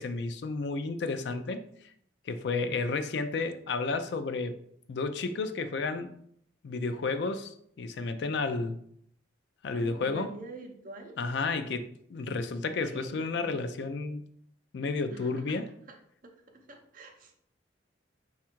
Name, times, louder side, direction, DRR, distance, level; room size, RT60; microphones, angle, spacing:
voice 1, 0.0-1.6 2.3-4.6 4.9-6.1 6.6-7.5 7.8-8.8 9.6-10.3 11.2-14.2 14.7-15.7, left 3 dB, 60° left, 10 dB, 0.3 m, -32 dB
voice 2, 9.7-11.2 12.8-13.6 15.1-15.6 15.9-16.0 16.2-17.3, right 2 dB, 45° right, 3 dB, 0.6 m, -46 dB
4.2 x 2.4 x 4.4 m, 0.68 s
head